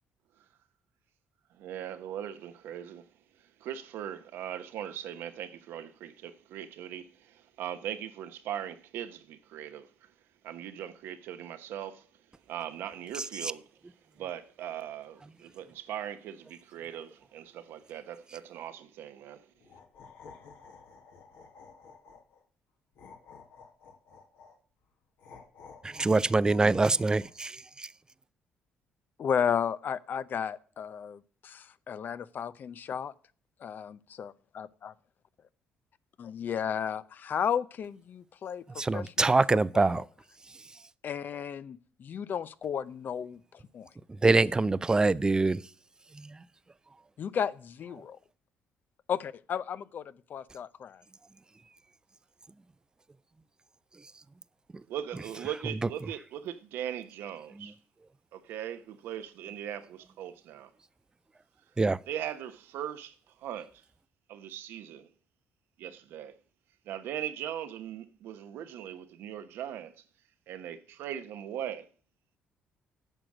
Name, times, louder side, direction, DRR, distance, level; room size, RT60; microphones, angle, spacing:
voice 1, 1.5-3.1 3.4-10.1 10.4-12.1 12.5-13.7 14.1-19.5 54.9-57.8 58.3-60.7 62.1-63.8 64.3-65.1 65.8-66.4 66.8-70.0 70.5-71.9, right 10 dB, 75° right, 0.9 m, -40 dB
sound 1, 19.6-22.4 22.9-24.6 25.2-27.5, left 5 dB, 75° left, 1.8 m, -53 dB
voice 2, 25.8-27.9 38.8-40.0 44.2-45.6 46.2-46.4 61.8-62.0, right 3 dB, 20° right, 0.4 m, -24 dB
voice 3, 29.2-33.1 33.6-34.9 36.2-40.0 41.0-43.9 47.2-48.2 49.1-51.0, left 8 dB, 55° left, 0.6 m, -34 dB
9.0 x 6.3 x 6.1 m
supercardioid pair, 75°, 4 cm